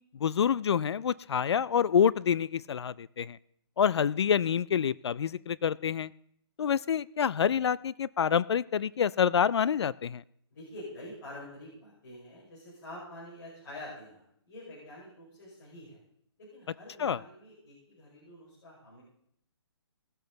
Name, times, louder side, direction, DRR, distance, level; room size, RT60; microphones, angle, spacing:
voice 1, 0.2-3.4 3.8-6.1 6.6-10.2 17.0-17.2, left 8 dB, 70° left, 21 dB, 0.4 m, -27 dB
voice 2, 10.5-16.0 16.4-19.0, left 1 dB, 45° left, -7 dB, 5.6 m, -47 dB
19.0 x 7.9 x 3.9 m, 0.70 s
hypercardioid pair, 165°, 14 cm